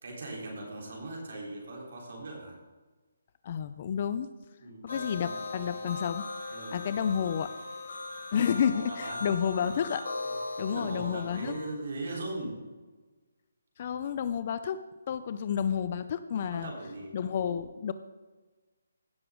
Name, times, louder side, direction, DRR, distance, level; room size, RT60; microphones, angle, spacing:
voice 1, 0.0-2.6 4.6-5.4 5.8-5.9 6.5-6.8 8.5-9.2 9.6-9.7 10.7-12.6 16.5-17.2, right 2 dB, 60° right, -1 dB, 3.7 m, -39 dB
voice 2, 3.4-4.3 4.8-6.2 6.7-7.5 8.3-10.0 10.6-11.5 13.8-16.7 17.1-17.9, left 8 dB, 40° left, 12 dB, 0.5 m, -30 dB
sound 1, 4.9-11.7, left 3 dB, 70° left, 2.6 m, -39 dB
16.5 x 6.8 x 3.8 m, 1.3 s
hypercardioid pair, 155°, 0 cm